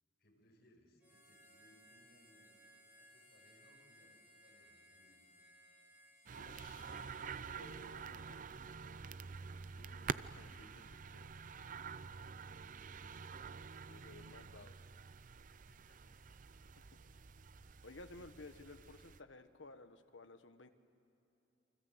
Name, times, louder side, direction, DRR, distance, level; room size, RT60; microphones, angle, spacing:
voice 1, 0.2-5.5 12.5-12.6 13.1-13.8 15.5-16.3, equal, 55° left, -1 dB, 5.5 m, -70 dB
Harmonica, 1.0-9.0, equal, 10° right, 7.8 m, -65 dB
sound 1, 6.3-19.2, right 5 dB, 45° right, 0.5 m, -48 dB
voice 2, 6.4-8.6 9.7-11.3 13.9-14.7 16.8-16.9 17.8-20.7, left 2 dB, 80° left, 9 dB, 1.4 m, -57 dB
29.0 x 24.5 x 8.1 m, 2.9 s
head